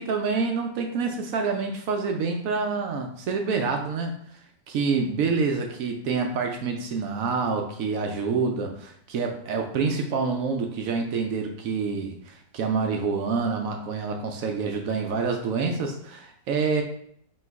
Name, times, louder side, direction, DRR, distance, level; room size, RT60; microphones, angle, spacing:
voice 1, 0.0-4.1 4.7-16.8, right 4 dB, 75° right, 3 dB, 0.8 m, -27 dB
3.1 x 2.9 x 4.6 m, 0.67 s
omnidirectional pair, 1.9 m